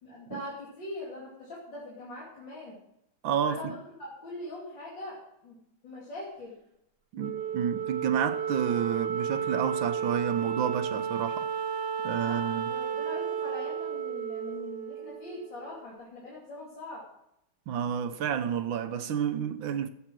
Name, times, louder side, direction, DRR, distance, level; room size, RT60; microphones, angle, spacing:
voice 1, 0.0-2.8 3.5-6.6 12.2-17.1, left 1 dB, 65° left, 3.4 m, -42 dB
voice 2, 3.2-3.8 7.1-11.5 12.0-12.7 17.7-19.9, right 8 dB, 75° right, 1.6 m, -30 dB
Wind instrument woodwind instrument, 7.2-15.8, right 7 dB, 60° right, 1.8 m, -33 dB
14.0 x 8.3 x 6.1 m
omnidirectional pair, 2.1 m